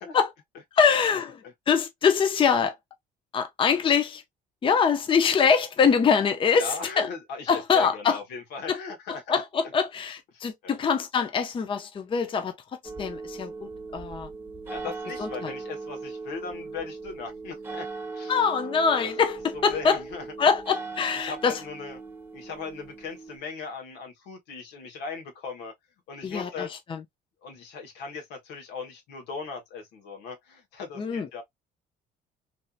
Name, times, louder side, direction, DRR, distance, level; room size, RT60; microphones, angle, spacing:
voice 1, 0.7-1.4 1.7-2.7 3.3-4.2 4.6-7.1 7.5-8.2 8.7-8.8 9.1-12.5 13.0-14.3 15.2-15.5 18.3-20.0 20.4-21.6 26.2-27.0 31.0-31.3, left 6 dB, 30° left, 0.6 m, -24 dB
voice 2, 6.5-9.4 10.3-10.8 14.7-17.9 18.1-18.4 19.0-19.1 19.5-20.2 21.0-22.0 22.3-25.7 26.1-26.7 27.4-31.4, left 5 dB, 90° left, 1.3 m, -38 dB
sound 1, 12.8-23.4, right 4 dB, 15° right, 1.1 m, -39 dB
3.2 x 2.7 x 2.4 m
cardioid pair, 110°, 17 cm